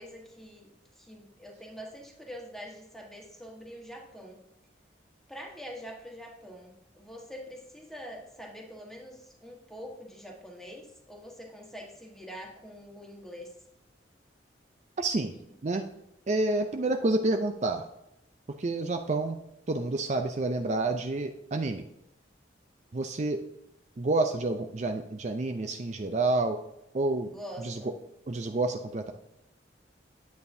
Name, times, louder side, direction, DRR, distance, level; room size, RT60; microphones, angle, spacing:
voice 1, 0.0-4.4 5.3-13.5 27.3-27.9, equal, ahead, 0 dB, 1.4 m, -45 dB
voice 2, 15.0-15.4 15.6-15.8 16.3-17.8 18.6-19.4 19.7-21.8 22.9-23.4 24.0-26.6 26.9-27.3 27.6-27.9 28.3-29.1, right 2 dB, 40° right, 6 dB, 0.5 m, -29 dB
9.4 x 8.5 x 2.7 m, 0.85 s
head